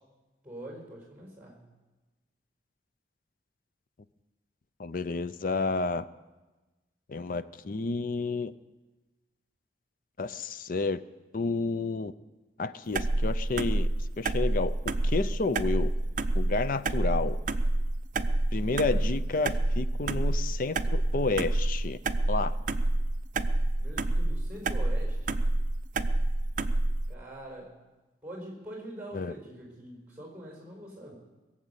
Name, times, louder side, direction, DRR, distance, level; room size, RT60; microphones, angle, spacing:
voice 1, 0.4-1.6 23.8-25.3 27.1-27.7 28.2-31.1, right 1 dB, 5° right, 1 dB, 4.4 m, -44 dB
voice 2, 4.8-6.1 7.1-8.5 10.2-11.0 11.3-12.1 12.6-13.9 14.2-14.7 15.0-15.9 16.4-17.4 18.5-22.0 22.3-22.6 29.1-29.3, left 3 dB, 50° left, 14 dB, 0.5 m, -30 dB
sound 1, 12.9-27.1, right 2 dB, 45° right, 0.5 m, -28 dB
21.0 x 7.4 x 8.2 m, 1.2 s
head